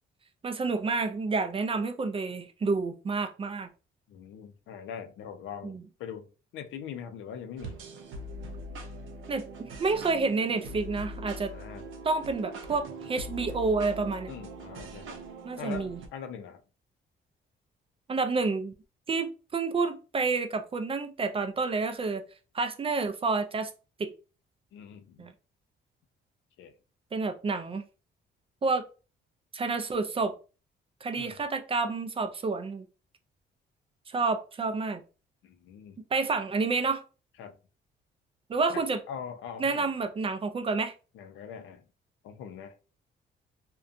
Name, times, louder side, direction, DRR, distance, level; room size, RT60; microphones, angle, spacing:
voice 1, 0.4-3.7 5.6-5.8 9.3-11.5 12.0-14.3 15.4-16.0 18.1-18.7 19.1-22.2 22.5-23.7 24.0-24.1 25.2-25.3 27.1-27.8 28.6-28.8 29.5-30.3 31.0-32.8 34.1-35.0 36.1-37.0 38.5-39.0 39.6-40.9, right 4 dB, 30° right, 0.4 m, -29 dB
voice 2, 4.1-7.8 11.5-11.8 14.3-15.2 15.6-16.6 24.7-25.3 26.6-26.7 31.2-31.4 35.4-36.0 37.4-37.6 38.7-39.9 41.1-41.9 42.2-42.8, left 7 dB, 80° left, 0.4 m, -42 dB
sound 1, 7.6-16.1, right 1 dB, 80° right, 0.6 m, -42 dB
2.5 x 2.2 x 2.5 m
cardioid pair, 90°, 20 cm